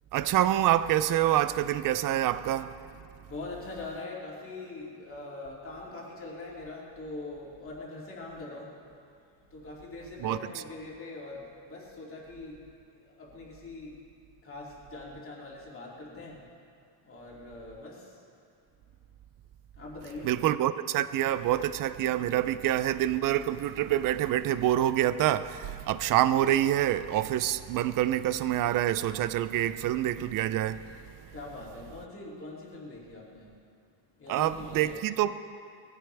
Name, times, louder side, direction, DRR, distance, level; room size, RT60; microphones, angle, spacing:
voice 1, 0.1-2.7 10.2-10.4 20.2-31.0 31.2-31.3 34.3-35.4, right 12 dB, 45° right, 0.4 m, -26 dB
voice 2, 3.3-8.8 9.4-14.1 14.4-16.5 17.0-18.2 19.7-20.3 31.3-33.6 34.2-35.0, left 2 dB, 25° left, 2.8 m, -43 dB
21.0 x 15.5 x 3.4 m
cardioid pair, 170°, 49 cm